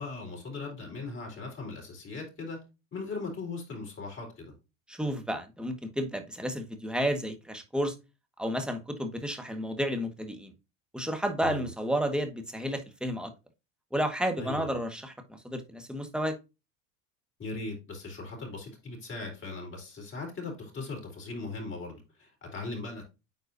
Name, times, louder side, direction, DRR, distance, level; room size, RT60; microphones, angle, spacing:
voice 1, 0.0-2.6 2.9-4.5 11.4-11.7 14.4-14.8 17.4-23.0, left 3 dB, 30° left, 4.2 m, -39 dB
voice 2, 4.9-7.9 8.4-10.5 10.9-13.3 13.9-16.4, equal, ahead, 1.6 m, -31 dB
9.2 x 4.4 x 2.7 m
hypercardioid pair, 95°, 40 cm